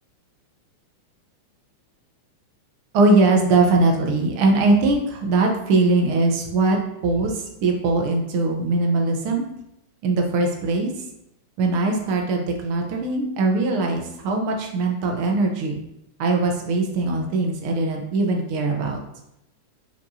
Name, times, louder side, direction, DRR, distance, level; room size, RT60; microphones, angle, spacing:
voice 1, 2.9-6.8 7.0-7.3 7.6-9.4 10.0-10.9 11.6-15.8 16.2-19.0, right 3 dB, 65° right, 2 dB, 1.3 m, -21 dB
10.0 x 4.7 x 2.8 m, 0.82 s
omnidirectional pair, 3.6 m